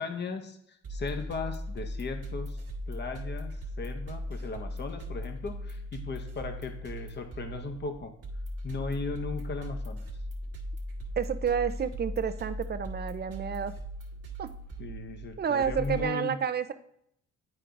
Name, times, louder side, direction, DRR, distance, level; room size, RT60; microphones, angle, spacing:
voice 1, 0.0-8.1 8.6-10.0 14.8-16.4, left 4 dB, 35° left, 6 dB, 0.9 m, -37 dB
sound 1, 0.8-16.1, equal, 55° right, 1.2 m, -38 dB
voice 2, 11.2-13.7 14.4-14.5 15.4-16.7, right 7 dB, 35° right, 11 dB, 0.5 m, -30 dB
9.8 x 4.4 x 2.6 m, 0.70 s
cardioid pair, 90°, 30 cm